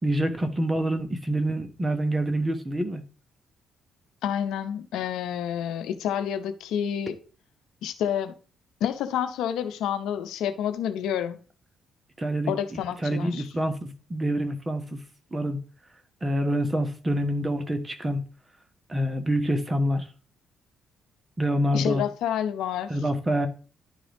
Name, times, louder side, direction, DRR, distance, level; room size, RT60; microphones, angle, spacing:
voice 1, 0.0-3.0 12.2-15.0 15.3-15.6 16.2-18.2 18.9-20.1 21.4-22.0 22.9-23.5, right 1 dB, 20° right, 1.2 m, -26 dB
voice 2, 4.2-7.1 7.8-8.3 8.8-11.4 12.5-13.5 21.7-22.9, left 9 dB, 85° left, 0.7 m, -29 dB
11.0 x 3.7 x 3.5 m
cardioid pair, 90°, 0 cm